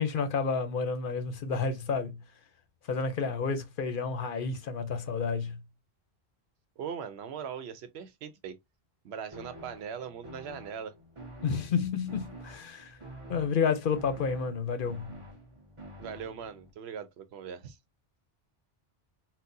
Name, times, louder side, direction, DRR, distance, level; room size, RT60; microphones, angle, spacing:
voice 1, 0.0-2.2 2.9-5.6 11.4-13.0 13.3-15.2, left 5 dB, 60° left, 0.7 m, -30 dB
voice 2, 6.8-8.6 9.0-11.0 16.0-17.8, right 7 dB, 80° right, 0.9 m, -40 dB
sound 1, 9.3-16.7, right 1 dB, 30° right, 1.0 m, -48 dB
4.0 x 2.1 x 2.5 m
omnidirectional pair, 1.1 m